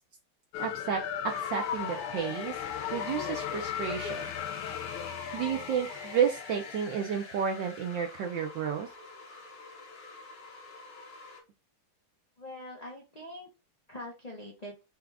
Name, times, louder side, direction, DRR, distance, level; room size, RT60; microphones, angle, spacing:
sound 1, 0.5-7.1, left 9 dB, 85° left, 1.5 m, -36 dB
voice 1, 0.6-1.0 1.5-2.5 2.9-4.3 5.3-8.9, right 7 dB, 70° right, 2 dB, 1.2 m, -31 dB
sound 2, 1.2-11.4, left 3 dB, 70° left, 2.1 m, -46 dB
voice 2, 12.4-13.5 13.9-14.7, left 1 dB, 45° left, -3 dB, 0.5 m, -43 dB
4.8 x 2.4 x 3.3 m, 0.28 s
omnidirectional pair, 2.3 m